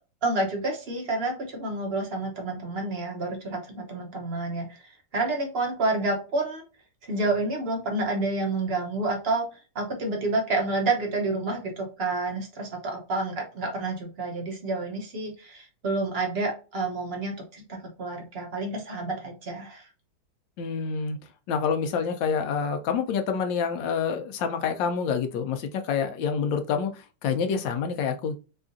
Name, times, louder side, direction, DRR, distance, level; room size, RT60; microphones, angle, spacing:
voice 1, 0.2-6.6 7.0-9.5 9.7-19.9, right 2 dB, 45° right, 0.8 m, -29 dB
voice 2, 20.6-21.2 21.5-28.4, left 6 dB, 85° left, 1.3 m, -27 dB
4.4 x 2.4 x 2.5 m
omnidirectional pair, 2.0 m